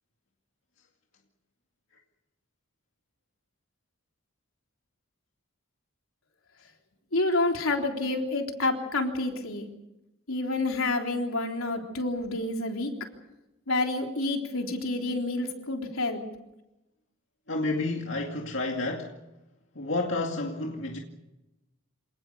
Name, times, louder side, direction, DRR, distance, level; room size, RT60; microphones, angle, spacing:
voice 1, 7.1-9.7 10.3-12.9 13.7-16.2, left 2 dB, 80° left, 3.7 m, -28 dB
voice 2, 17.5-19.1 19.8-21.0, left 2 dB, 60° left, 2.3 m, -30 dB
28.0 x 19.0 x 6.9 m
head